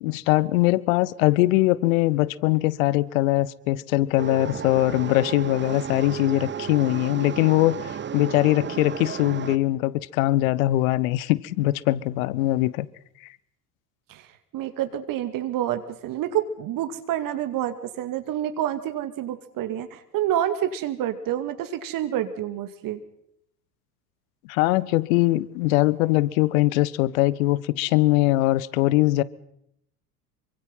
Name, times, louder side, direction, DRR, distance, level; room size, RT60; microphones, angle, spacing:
voice 1, 0.0-12.9 24.5-29.2, left 17 dB, 55° left, 1.3 m, -22 dB
sound 1, 4.2-9.6, right 8 dB, 25° right, 1.3 m, -33 dB
voice 2, 14.5-23.0, right 11 dB, 45° right, 2.4 m, -28 dB
27.5 x 24.5 x 5.7 m
figure-of-eight pair, 70°, 48 cm